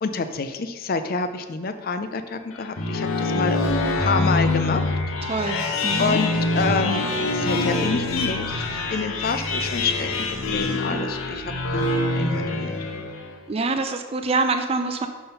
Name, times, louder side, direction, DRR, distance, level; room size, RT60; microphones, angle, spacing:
voice 1, 0.0-3.7 4.0-4.8 6.0-7.0 7.3-11.9 12.1-12.7, left 4 dB, 40° left, 9 dB, 0.4 m, -28 dB
sound 1, 2.5-13.4, left 2 dB, 65° left, 0.8 m, -25 dB
voice 2, 5.2-6.2 13.5-15.1, right 3 dB, 25° right, 7 dB, 0.4 m, -25 dB
6.0 x 5.6 x 5.4 m, 1.4 s
head